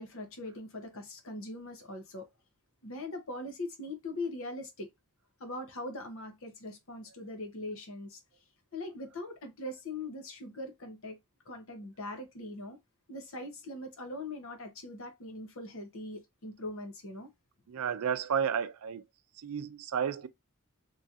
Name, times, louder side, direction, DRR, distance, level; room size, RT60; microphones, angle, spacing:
voice 1, 0.0-2.3 2.8-4.9 5.4-8.2 8.7-11.2 11.5-12.8 13.1-17.3, left 2 dB, 70° left, 0.9 m, -41 dB
voice 2, 17.7-19.0 19.3-20.3, right 7 dB, 80° right, 0.4 m, -32 dB
3.0 x 2.7 x 2.5 m
head